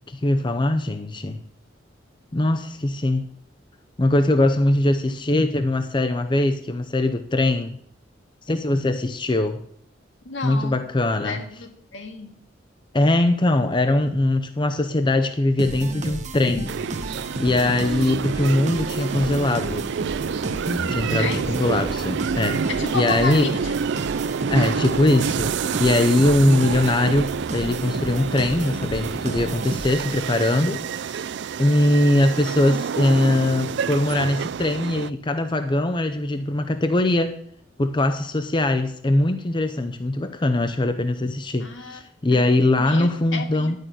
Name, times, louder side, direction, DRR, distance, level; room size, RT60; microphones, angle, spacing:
voice 1, 0.1-1.4 2.3-3.3 4.0-7.8 8.5-9.6 10.4-11.4 12.9-16.8 17.4-19.8 20.9-23.5 24.5-31.2 31.6-37.4 37.8-43.8, left 1 dB, 25° left, 0.6 m, -21 dB
voice 2, 10.3-10.8 11.2-12.4 21.1-21.6 22.7-23.7 41.6-42.0 42.3-42.5 42.8-43.8, left 3 dB, 75° left, 2.0 m, -32 dB
sound 1, 15.6-30.2, right 2 dB, 40° right, 1.0 m, -32 dB
sound 2, 16.7-35.1, right 6 dB, 65° right, 0.4 m, -28 dB
10.5 x 6.6 x 9.1 m
head